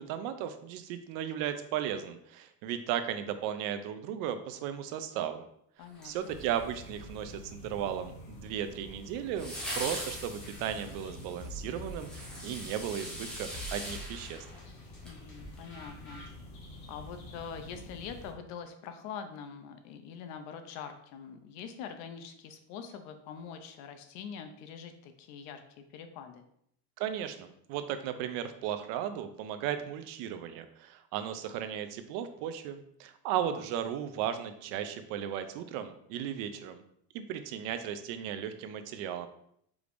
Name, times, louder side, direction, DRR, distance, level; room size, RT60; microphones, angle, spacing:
voice 1, 0.0-5.5 6.0-14.5 27.0-36.8 37.1-39.3, right 9 dB, 65° right, 9 dB, 0.5 m, -36 dB
voice 2, 5.8-6.4 15.0-16.2 16.9-26.4 33.4-33.6, left 7 dB, 50° left, 7 dB, 0.5 m, -44 dB
sound 1, 5.9-6.9 9.4-15.2 15.5-15.6, equal, ahead, 0.5 m, -42 dB
sound 2, 6.3-18.3, left 1 dB, 85° left, 1.4 m, -48 dB
sound 3, 9.4-16.3, equal, 35° left, 1.4 m, -49 dB
4.8 x 3.4 x 2.5 m, 0.71 s
cardioid pair, 180°, 36 cm